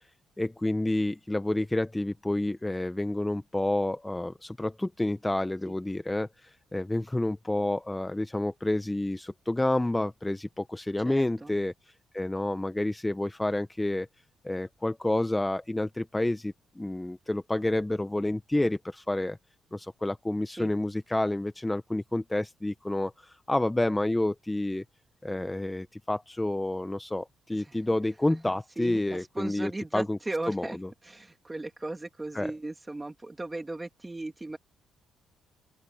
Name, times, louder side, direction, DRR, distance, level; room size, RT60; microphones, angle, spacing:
voice 1, 0.4-11.7 12.1-14.1 14.4-19.4 19.7-24.8 25.2-30.2 30.5-30.9 32.3-32.5, left 1 dB, 10° left, 0.8 m, -29 dB
voice 2, 11.0-11.5 20.6-20.8 27.6-27.8 28.3-30.8 31.0-34.6, right 2 dB, 15° right, 2.6 m, -37 dB
open air
cardioid pair, 90°, 0 cm